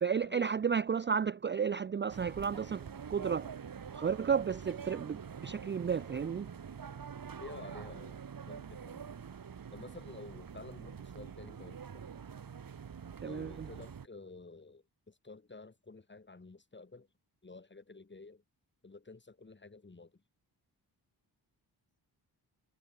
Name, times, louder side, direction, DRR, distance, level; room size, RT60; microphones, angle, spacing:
voice 1, 0.0-3.5 3.9-6.5 13.2-13.7, right 6 dB, 30° right, 0.4 m, -33 dB
sound 1, 2.1-14.1, right 7 dB, 55° right, 2.7 m, -46 dB
voice 2, 7.4-9.1 9.7-12.1 13.2-17.1 17.4-18.4 18.8-20.2, left 3 dB, 25° left, 7.3 m, -51 dB
wide cardioid pair, 135°, 41 cm